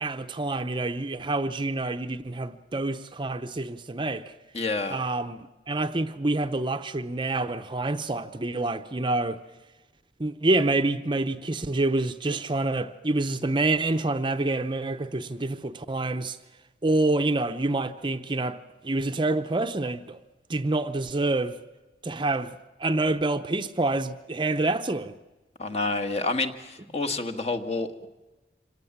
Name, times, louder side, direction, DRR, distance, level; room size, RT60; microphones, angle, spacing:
voice 1, 0.0-4.3 4.9-9.4 10.2-16.4 16.8-20.2 20.5-21.6 22.0-25.1, right 2 dB, 30° right, 0.7 m, -27 dB
voice 2, 4.5-5.0 25.6-28.1, left 3 dB, 35° left, 1.4 m, -29 dB
26.0 x 18.0 x 7.2 m
head